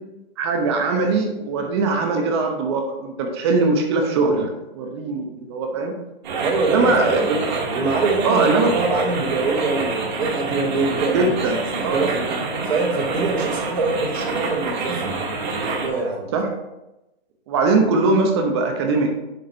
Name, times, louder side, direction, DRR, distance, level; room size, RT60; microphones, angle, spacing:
voice 1, 0.4-5.9 6.6-7.5 8.2-8.7 11.1-11.6 11.8-12.1 16.3-16.5 17.5-19.2, right 3 dB, 25° right, 3 dB, 0.7 m, -21 dB
sound 1, 6.2-15.9, right 3 dB, 45° right, 1.4 m, -27 dB
voice 2, 6.4-7.4 7.7-11.4 11.8-12.3 12.6-15.1 15.7-16.3, right 3 dB, 85° right, -2 dB, 2.2 m, -24 dB
6.6 x 3.9 x 4.4 m, 0.94 s
hypercardioid pair, 150°, 30 cm